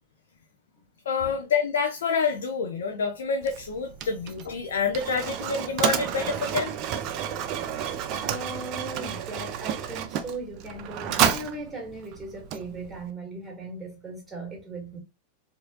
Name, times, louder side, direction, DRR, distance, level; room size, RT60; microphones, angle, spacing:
voice 1, 1.1-6.7 8.1-8.2, left 5 dB, 60° left, 0.5 m, -27 dB
Mechanisms, 3.4-13.1, right 9 dB, 40° right, 0.5 m, -31 dB
voice 2, 8.2-15.0, right 2 dB, 10° right, 1.8 m, -38 dB
4.6 x 2.6 x 2.8 m
figure-of-eight pair, 90°, 0 cm